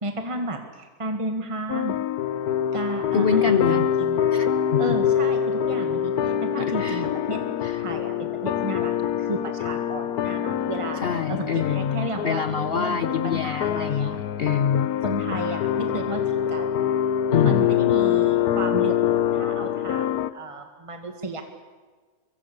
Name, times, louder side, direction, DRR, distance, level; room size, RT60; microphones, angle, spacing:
voice 1, 0.0-1.9 2.7-4.2 4.8-7.4 7.8-11.0 11.3-14.2 15.0-16.7 17.4-18.9 19.3-21.4, right 1 dB, 20° right, 5 dB, 1.9 m, -33 dB
sound 1, 1.7-20.3, left 9 dB, 75° left, 1.4 m, -25 dB
voice 2, 3.1-3.9 4.3-4.8 6.6-7.0 7.6-7.8 11.0-14.9 17.3-17.7, left 6 dB, 50° left, 12 dB, 0.8 m, -26 dB
24.5 x 24.0 x 7.0 m, 1.4 s
omnidirectional pair, 1.7 m